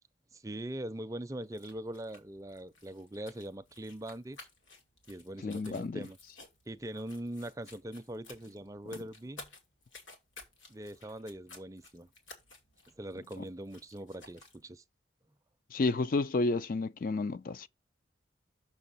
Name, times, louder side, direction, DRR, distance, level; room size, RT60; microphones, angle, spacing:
voice 1, 0.3-4.4 5.1-6.2 6.7-9.5 10.7-12.1 13.0-14.8, right 1 dB, 15° right, 0.5 m, -42 dB
sound 1, 1.4-14.6, left 3 dB, 80° left, 2.6 m, -55 dB
voice 2, 5.4-6.0 15.7-17.7, left 3 dB, 45° left, 0.4 m, -31 dB
6.7 x 6.3 x 4.1 m
head